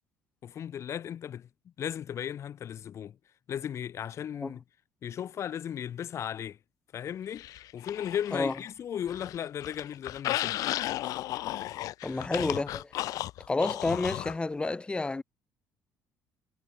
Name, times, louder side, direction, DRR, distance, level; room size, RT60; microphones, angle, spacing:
voice 1, 0.4-3.2 3.5-4.6 5.0-6.6 6.9-7.5 7.7-10.6, left 9 dB, 50° left, 1.2 m, -36 dB
sound 1, 7.4-8.7 9.0-14.4, left 15 dB, 70° left, 1.2 m, -34 dB
voice 2, 12.0-12.9 13.5-15.2, left 3 dB, 15° left, 1.2 m, -30 dB
cardioid pair, 95°, 6 cm